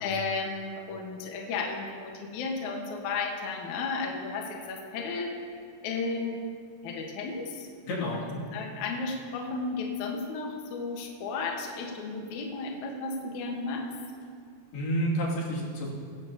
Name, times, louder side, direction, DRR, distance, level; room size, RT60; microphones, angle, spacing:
voice 1, 0.0-5.3 5.8-6.4 6.8-7.7 8.1-8.2 8.5-13.9, left 4 dB, 60° left, 0 dB, 2.3 m, -33 dB
voice 2, 7.8-8.5 14.7-15.9, equal, 80° left, -5 dB, 4.3 m, -30 dB
18.5 x 16.5 x 2.8 m, 2.2 s
omnidirectional pair, 4.5 m